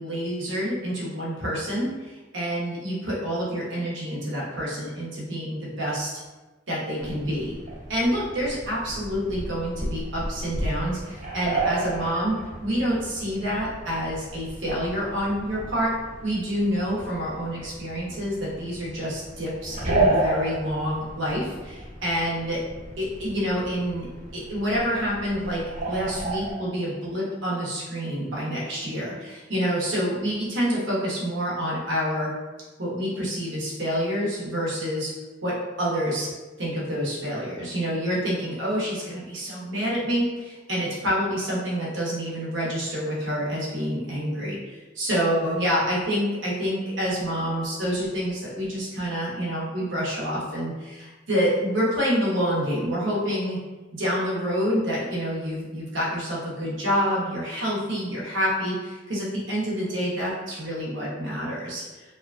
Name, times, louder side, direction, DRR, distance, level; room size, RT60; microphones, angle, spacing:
voice 1, 0.0-6.1 6.7-7.6 7.9-15.9 16.2-22.6 23.0-24.1 24.3-32.3 32.8-35.1 35.4-36.3 36.6-53.6 53.9-61.8, equal, 70° right, -6 dB, 0.9 m, -27 dB
sound 1, 7.0-26.5, right 2 dB, 40° right, 0.7 m, -32 dB
2.9 x 2.3 x 2.4 m, 1.2 s
head